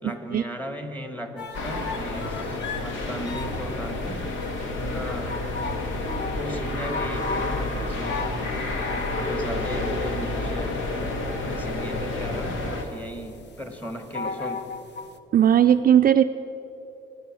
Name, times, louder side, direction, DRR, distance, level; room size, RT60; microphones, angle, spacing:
voice 1, 0.0-4.3 4.6-5.5 6.3-10.9 11.5-14.7, equal, 10° left, 6 dB, 2.0 m, -36 dB
sound 1, 1.4-15.2, left 4 dB, 60° left, 1.1 m, -36 dB
sound 2, 1.5-12.8, left 2 dB, 85° left, 2.0 m, -30 dB
voice 2, 15.3-16.2, right 10 dB, 50° right, 8 dB, 0.4 m, -17 dB
23.0 x 9.7 x 6.3 m, 2.8 s
cardioid pair, 90°, 20 cm